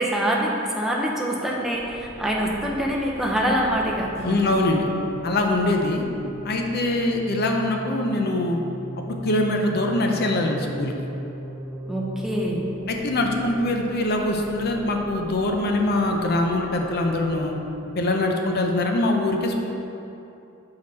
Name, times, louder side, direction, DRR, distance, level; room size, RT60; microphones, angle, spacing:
voice 1, 0.0-4.1 11.9-12.6, equal, ahead, -3 dB, 0.7 m, -25 dB
sound 1, 1.7-17.8, equal, 90° right, 0.9 m, -39 dB
Acoustic guitar / Strum, 4.1-7.7, equal, 35° left, 1.5 m, -42 dB
voice 2, 4.2-4.9 5.2-6.1 6.4-8.6 9.0-10.9 12.9-17.5 17.9-19.6, left 2 dB, 50° left, 2 dB, 0.6 m, -23 dB
6.4 x 4.8 x 4.1 m, 2.8 s
head